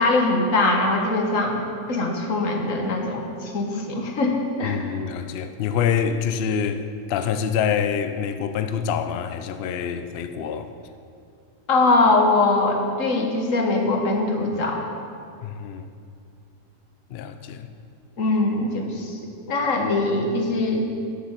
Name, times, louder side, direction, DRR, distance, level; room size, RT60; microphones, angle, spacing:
voice 1, 0.0-1.6 1.9-4.9 11.7-14.8 18.2-19.1 19.5-20.8, left 2 dB, 55° left, 2 dB, 1.6 m, -22 dB
voice 2, 4.6-10.7 15.4-15.9 17.1-17.7, left 7 dB, 85° left, 9 dB, 0.5 m, -26 dB
9.3 x 7.4 x 7.3 m, 2.4 s
omnidirectional pair, 1.7 m